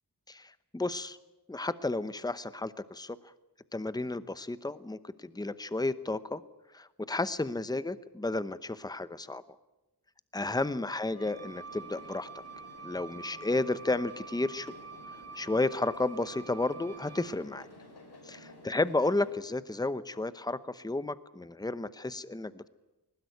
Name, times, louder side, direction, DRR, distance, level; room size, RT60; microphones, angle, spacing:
voice 1, 0.3-1.2 1.5-3.2 3.7-6.4 6.7-9.4 10.3-12.3 12.8-14.7 15.3-17.7 18.3-18.4 18.6-22.7, left 2 dB, 10° left, 14 dB, 0.9 m, -32 dB
Wind instrument woodwind instrument, 11.1-17.4, right 5 dB, 40° right, 2.5 m, -47 dB
sound 1, 11.2-19.4, left 1 dB, 75° left, 6.2 m, -52 dB
21.0 x 19.5 x 9.4 m, 1.0 s
wide cardioid pair, 85°, 39 cm